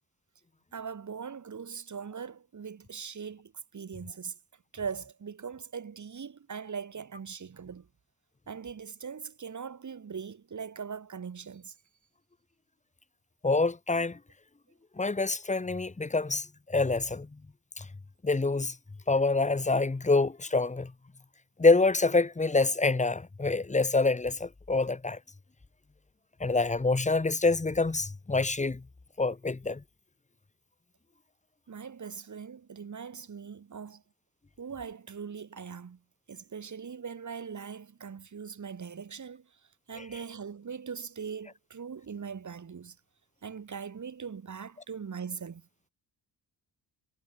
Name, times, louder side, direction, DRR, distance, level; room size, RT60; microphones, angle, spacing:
voice 1, 0.7-4.4 4.7-7.9 8.5-11.7 31.7-34.0 34.6-36.0 36.3-39.5 39.9-43.0 43.4-45.6, right 6 dB, 45° right, 6.0 m, -40 dB
voice 2, 13.4-14.2 15.0-17.3 17.8-17.9 18.2-18.8 19.1-20.9 21.6-25.2 26.4-28.8 29.2-29.8, left 3 dB, 15° left, 1.8 m, -26 dB
cardioid pair, 85°, 42 cm